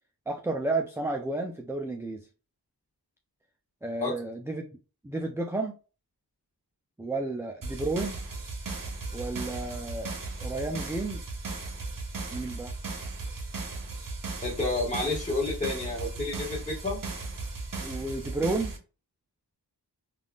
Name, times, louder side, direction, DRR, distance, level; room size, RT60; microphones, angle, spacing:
voice 1, 0.3-2.3 3.8-4.6 5.0-5.7 7.0-8.2 9.1-10.1 10.4-11.4 12.3-12.7 17.8-18.7, right 2 dB, 5° right, 2 dB, 0.3 m, -32 dB
sound 1, 7.6-18.8, right 3 dB, 50° right, 0.8 m, -36 dB
voice 2, 14.4-17.0, left 3 dB, 20° left, -4 dB, 1.5 m, -30 dB
3.5 x 2.5 x 2.3 m, 0.34 s
wide cardioid pair, 55°, 42 cm